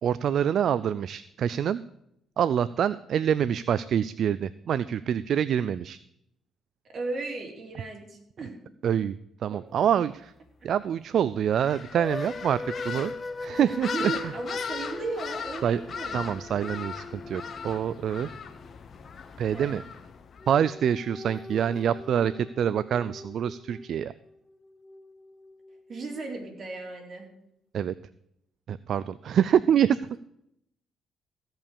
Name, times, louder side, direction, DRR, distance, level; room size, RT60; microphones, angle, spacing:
voice 1, 0.0-1.8 2.4-6.0 8.8-9.1 9.4-10.3 10.6-13.1 13.4-14.3 15.6-15.8 16.1-18.3 19.4-19.8 20.5-24.1 27.7-27.9 28.7-30.2, right 9 dB, 65° right, 16 dB, 0.4 m, -26 dB
voice 2, 6.9-8.6 9.5-9.6 13.5-16.4 19.5-19.8 25.9-27.3, right 3 dB, 45° right, 1 dB, 3.9 m, -36 dB
sound 1, 11.5-20.6, left 6 dB, 50° left, 1.1 m, -39 dB
sound 2, 11.9-19.3 20.4-26.5, left 2 dB, 25° left, 0.8 m, -41 dB
16.0 x 5.7 x 6.9 m, 0.76 s
cardioid pair, 90°, 0 cm